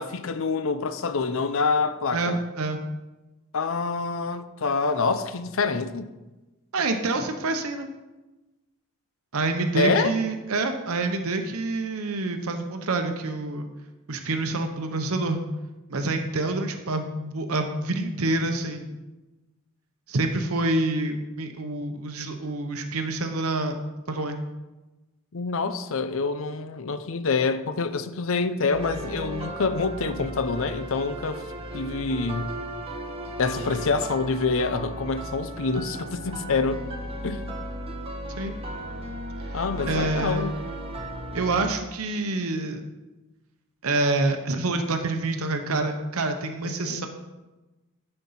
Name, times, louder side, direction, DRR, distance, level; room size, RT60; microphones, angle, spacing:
voice 1, 0.0-2.4 3.5-6.1 9.7-10.1 25.3-31.4 31.7-32.5 33.4-36.8 37.2-37.4 39.5-40.5 46.6-47.1, left 4 dB, 60° left, 0.6 m, -26 dB
voice 2, 2.1-2.8 6.7-7.9 9.3-13.7 14.1-15.4 15.9-19.0 20.1-23.8 24.1-24.4 38.4-38.5 39.5-40.5 41.3-42.8 43.8-47.1, right 2 dB, 75° right, 0.8 m, -27 dB
sound 1, 28.7-41.7, right 1 dB, 25° right, 1.0 m, -35 dB
11.5 x 4.4 x 5.6 m
head